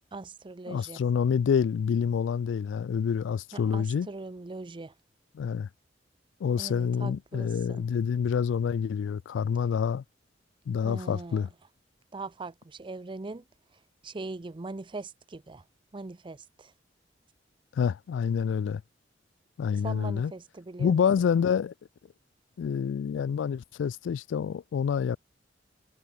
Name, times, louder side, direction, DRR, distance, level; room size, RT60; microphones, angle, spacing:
voice 1, 0.1-1.0 3.5-4.9 6.6-7.8 10.8-11.5 12.1-13.4 13.7-15.6 15.9-16.7 19.7-21.0, right 3 dB, 25° right, 0.5 m, -41 dB
voice 2, 0.7-4.1 5.4-5.7 6.4-10.0 10.7-11.5 17.7-18.8 19.6-20.3 20.8-21.7 22.6-25.2, left 7 dB, 80° left, 0.3 m, -27 dB
head